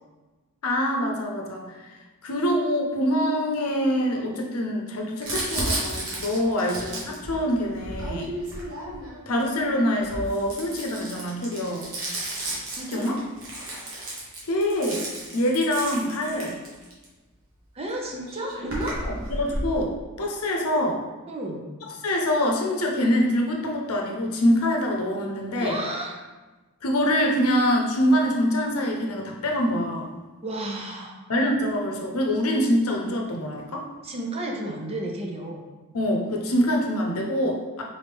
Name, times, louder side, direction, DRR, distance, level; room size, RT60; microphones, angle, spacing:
voice 1, 0.6-1.9 2.2-8.3 9.3-11.9 12.9-13.2 14.5-15.1 15.3-16.5 19.0-21.0 22.0-25.8 26.8-30.1 31.3-33.9 35.9-37.8, equal, 75° left, 1 dB, 0.7 m, -25 dB
Crumpling crinkling, 5.2-9.3 9.9-17.0 17.9-18.0 18.2-19.7, right 1 dB, 60° right, 1.3 m, -33 dB
voice 2, 17.7-19.0 21.3-21.6 25.6-26.2 30.4-31.2 34.0-35.6, right 1 dB, 25° right, 0 dB, 0.6 m, -32 dB
3.8 x 3.3 x 3.4 m, 1.2 s
head